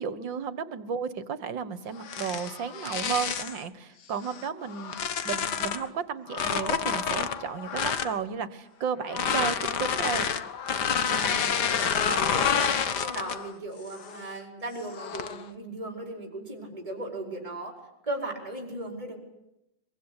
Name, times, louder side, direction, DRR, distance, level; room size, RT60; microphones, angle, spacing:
voice 1, 0.0-5.0 5.2-10.3, right 6 dB, 65° right, 14 dB, 2.0 m, -33 dB
sound 1, 2.0-3.6 4.2-5.9 6.3-8.2 9.0-13.5 13.9-14.3 14.9-15.4, left 7 dB, 55° left, 1.8 m, -29 dB
voice 2, 11.0-17.8 18.0-19.2, right 2 dB, 15° right, 3 dB, 5.0 m, -37 dB
23.5 x 23.5 x 9.9 m, 0.86 s
omnidirectional pair, 2.2 m